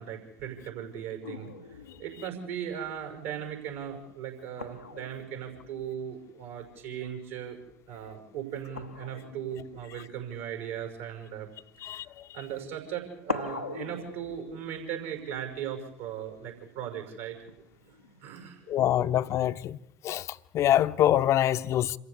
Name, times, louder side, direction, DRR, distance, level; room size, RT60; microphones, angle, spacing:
voice 1, 0.0-7.6 7.9-11.5 11.8-12.0 12.3-17.4 17.8-19.1, right 9 dB, 70° right, 5.9 m, -38 dB
sound 1, 1.2-7.1 7.4-7.8 8.7-12.0 12.8-12.9 13.3-16.5 17.5-18.5, left 3 dB, 90° left, 1.1 m, -43 dB
voice 2, 18.7-19.8 20.0-20.3 20.5-22.0, left 12 dB, 45° left, 0.9 m, -24 dB
27.0 x 15.0 x 8.2 m
figure-of-eight pair, 65°, 7 cm